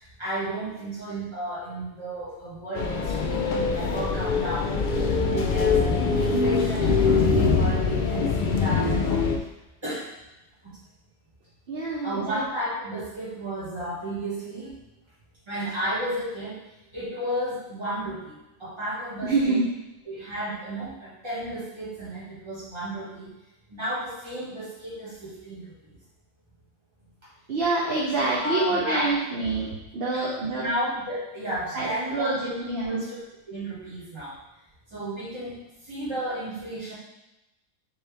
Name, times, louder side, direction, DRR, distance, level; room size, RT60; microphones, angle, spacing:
voice 1, 0.2-4.7 5.3-9.2 9.8-10.1 10.6-10.7 12.0-14.7 15.5-16.6 16.9-19.6 20.0-23.3 23.7-25.6 28.1-29.1 30.1-30.3 30.6-33.2 33.5-34.3 34.9-35.6 35.9-36.9, right 1 dB, 20° right, -8 dB, 1.6 m, -33 dB
sound 1, 2.8-9.4, left 4 dB, 70° left, 0.4 m, -23 dB
voice 2, 11.7-12.4 19.2-19.7 27.5-30.6 31.7-33.1, right 3 dB, 50° right, -5 dB, 0.9 m, -26 dB
4.3 x 3.6 x 3.4 m, 0.94 s
omnidirectional pair, 1.4 m